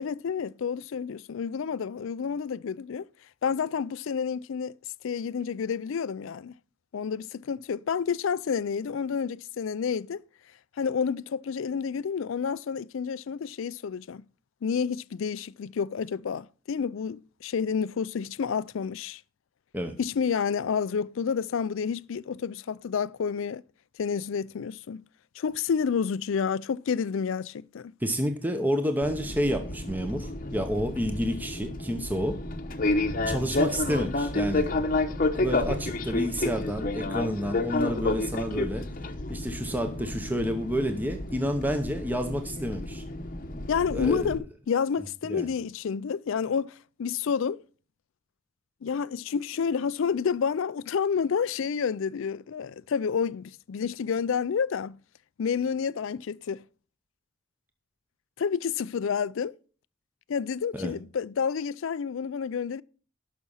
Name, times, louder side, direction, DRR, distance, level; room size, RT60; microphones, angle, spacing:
voice 1, 0.0-3.1 3.4-4.7 5.0-6.5 6.9-10.2 10.8-14.2 14.6-19.2 20.0-23.6 24.0-25.0 25.4-27.9 43.7-47.6 48.8-55.0 55.4-56.6 58.4-59.5 60.3-62.8, left 6 dB, 60° left, 0.4 m, -29 dB
voice 2, 28.0-32.4 33.3-34.7 35.3-38.9 39.3-43.0 43.9-44.3 45.3-45.5 60.7-60.9, equal, 10° right, 0.8 m, -29 dB
Fixed-wing aircraft airplane, 29.0-44.4, left 2 dB, 40° left, 0.9 m, -30 dB
12.0 x 6.0 x 5.5 m
head